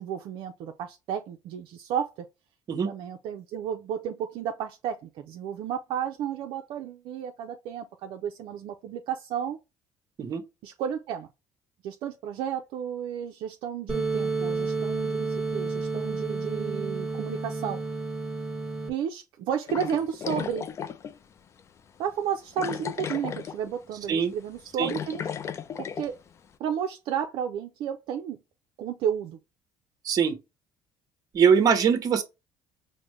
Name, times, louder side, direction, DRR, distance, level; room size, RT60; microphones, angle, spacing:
voice 1, 0.0-2.3 2.8-9.6 10.6-11.3 11.8-17.8 18.9-20.7 22.0-25.2 25.8-26.2 26.6-28.4 28.8-29.4, right 8 dB, 70° right, 0.5 m, -32 dB
sound 1, 13.9-18.9, right 3 dB, 10° right, 1.3 m, -30 dB
sound 2, 19.7-21.2 21.6-21.7 22.6-23.7 24.0-24.2 24.6-26.1, left 7 dB, 30° left, 0.3 m, -34 dB
voice 2, 30.0-30.4 31.3-32.2, right 6 dB, 40° right, 0.9 m, -22 dB
5.1 x 2.1 x 3.1 m
cardioid pair, 135°, 9 cm